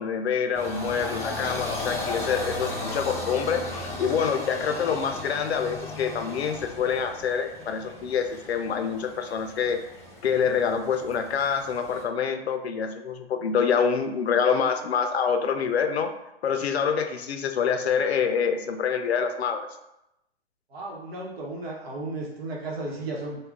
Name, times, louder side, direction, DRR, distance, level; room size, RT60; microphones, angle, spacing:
voice 1, 0.0-9.8 10.2-16.1 16.4-19.7, left 6 dB, 85° left, 7 dB, 0.5 m, -26 dB
sound 1, 0.5-12.0, left 2 dB, 10° left, 0.5 m, -36 dB
voice 2, 20.7-23.4, right 2 dB, 75° right, -3 dB, 1.1 m, -34 dB
2.7 x 2.4 x 3.5 m, 0.87 s
hypercardioid pair, 130°, 31 cm